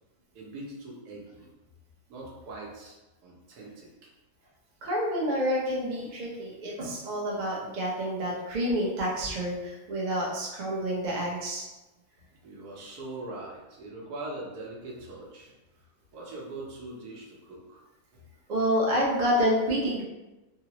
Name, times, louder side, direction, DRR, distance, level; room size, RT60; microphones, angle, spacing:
voice 1, 0.3-1.5 2.1-2.9 3.2-3.9 12.4-15.5 16.1-17.8 18.1-18.2, right 2 dB, 85° right, -3 dB, 1.3 m, -41 dB
voice 2, 4.8-11.6 18.5-20.0, equal, 45° right, -4 dB, 0.6 m, -28 dB
3.7 x 2.0 x 2.8 m, 1.0 s
omnidirectional pair, 1.6 m